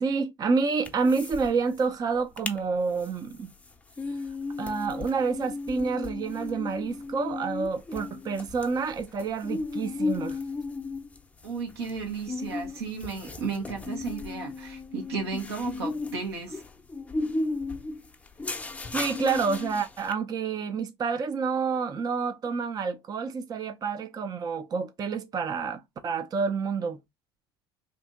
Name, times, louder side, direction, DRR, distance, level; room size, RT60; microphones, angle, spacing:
voice 1, 0.0-3.5 4.6-10.4 18.9-27.0, right 5 dB, 30° right, 0.5 m, -28 dB
sound 1, 0.8-1.5 1.7-1.8 2.2-2.6 3.0-20.1, left 3 dB, 10° left, 0.6 m, -35 dB
voice 2, 11.4-16.6, right 4 dB, 85° right, 1.2 m, -34 dB
2.7 x 2.6 x 3.5 m
hypercardioid pair, 80°, 13 cm